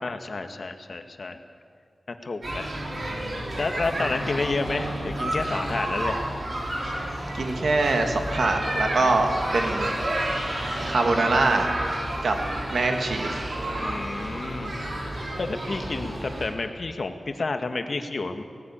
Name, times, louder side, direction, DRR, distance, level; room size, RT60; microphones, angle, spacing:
voice 1, 0.0-1.4 2.1-2.7 3.6-6.3 13.8-14.8 15.4-18.4, left 3 dB, 60° left, 7 dB, 1.5 m, -30 dB
sound 1, 2.4-16.5, right 1 dB, 60° right, 4.6 m, -30 dB
voice 2, 7.3-9.9 10.9-11.7 12.2-12.4 12.7-13.4, right 3 dB, 85° right, 4 dB, 2.2 m, -23 dB
18.5 x 17.0 x 8.8 m, 2.2 s
wide cardioid pair, 80°, 0 cm